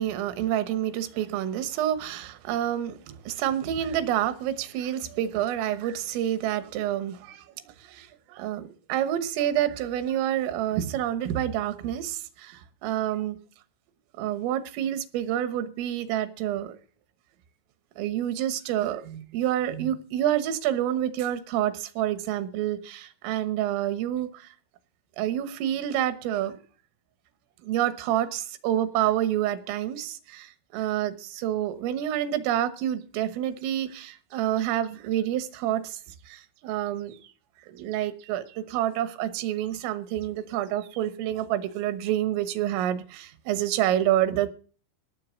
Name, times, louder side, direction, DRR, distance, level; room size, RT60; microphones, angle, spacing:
voice 1, 0.0-13.4 14.2-16.8 18.0-24.5 25.2-26.5 27.6-36.0 36.3-37.2 37.7-44.5, right 11 dB, 85° right, 3.8 m, -28 dB
18.0 x 7.5 x 6.3 m
omnidirectional pair, 5.7 m